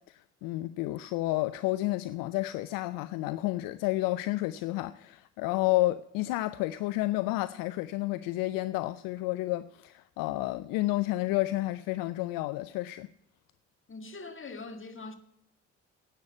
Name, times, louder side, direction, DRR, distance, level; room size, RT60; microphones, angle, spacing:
voice 1, 0.1-13.1, left 18 dB, 65° left, 0.5 m, -30 dB
voice 2, 13.9-15.1, left 3 dB, 35° left, 2.0 m, -42 dB
11.0 x 8.6 x 8.3 m
hypercardioid pair, 45°, 37 cm